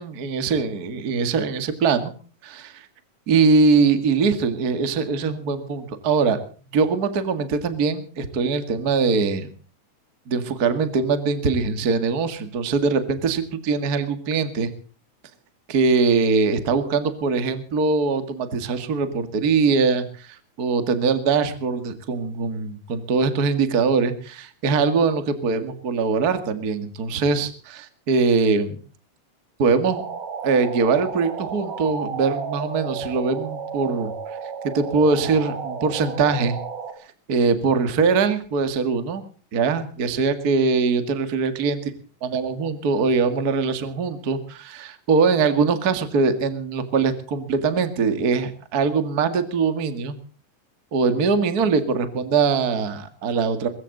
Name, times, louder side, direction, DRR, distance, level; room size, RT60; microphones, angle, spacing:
voice 1, 0.0-2.1 2.4-2.9 3.3-6.4 6.7-9.5 10.3-14.7 15.7-28.8 29.6-30.0 30.4-34.1 34.6-36.6 37.3-39.2 39.5-41.8 42.2-50.2 50.9-53.7, right 4 dB, 35° right, 10 dB, 1.9 m, -22 dB
sound 1, 29.9-36.9, right 6 dB, 70° right, 3.7 m, -33 dB
21.5 x 15.5 x 4.0 m, 0.40 s
omnidirectional pair, 3.9 m